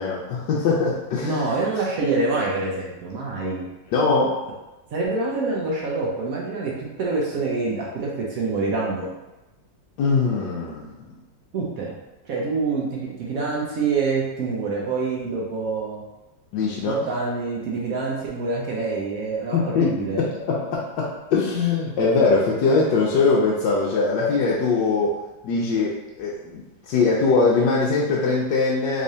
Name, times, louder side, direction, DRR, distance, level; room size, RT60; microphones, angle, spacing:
voice 1, 0.0-1.5 3.3-3.4 3.9-4.3 10.0-10.9 16.5-17.0 19.5-19.9 20.5-25.2 25.4-29.0, left 4 dB, 75° left, -5 dB, 1.2 m, -21 dB
voice 2, 1.2-3.7 4.9-6.7 7.0-9.1 11.5-11.9 12.3-16.0 16.8-20.2, right 3 dB, 70° right, -3 dB, 0.8 m, -26 dB
3.6 x 3.2 x 2.7 m, 1.0 s
omnidirectional pair, 2.1 m